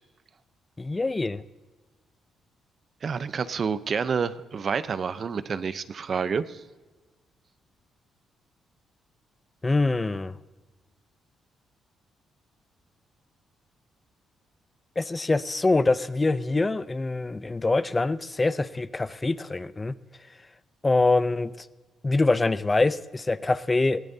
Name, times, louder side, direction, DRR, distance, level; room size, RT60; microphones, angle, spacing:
voice 1, 0.8-1.4 9.6-10.3 15.0-19.9 20.8-21.5 22.0-24.0, left 3 dB, 20° left, 16 dB, 0.6 m, -24 dB
voice 2, 3.0-6.6, right 6 dB, 45° right, 13 dB, 0.7 m, -28 dB
21.0 x 16.0 x 2.8 m, 1.2 s
cardioid pair, 90°, 0 cm